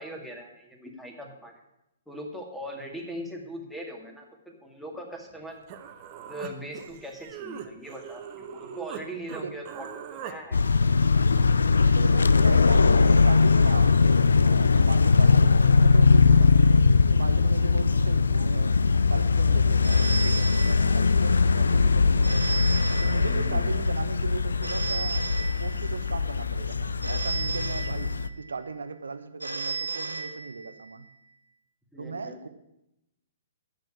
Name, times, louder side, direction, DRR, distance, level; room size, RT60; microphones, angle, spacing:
voice 1, 0.0-1.5 2.1-5.6 6.3-10.6 23.3-23.7 31.9-32.5, equal, ahead, 1 dB, 2.0 m, -40 dB
Human voice, 5.3-5.4 5.7-9.0 9.3-10.4, right 8 dB, 35° right, 1.1 m, -40 dB
sound 1, 10.5-28.3, left 4 dB, 70° left, 0.4 m, -21 dB
voice 2, 11.8-18.8 19.1-22.5 23.0-25.2 25.6-31.1 32.0-32.5, right 4 dB, 70° right, 10 dB, 1.0 m, -37 dB
Telephone, 19.8-21.3 22.2-23.7 24.6-26.1 27.0-28.5 29.4-30.9, right 3 dB, 90° right, 1.6 m, -34 dB
9.2 x 6.7 x 8.7 m, 0.86 s
figure-of-eight pair, 120°, 0 cm